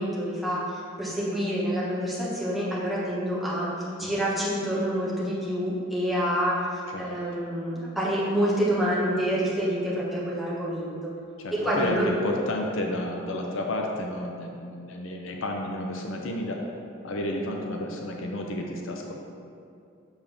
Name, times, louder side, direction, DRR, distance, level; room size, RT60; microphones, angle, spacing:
voice 1, 0.0-10.9 11.5-12.1, equal, ahead, -8 dB, 1.6 m, -27 dB
voice 2, 11.4-16.8 17.0-19.1, left 1 dB, 65° left, 1 dB, 0.7 m, -31 dB
7.2 x 6.6 x 3.6 m, 2.5 s
head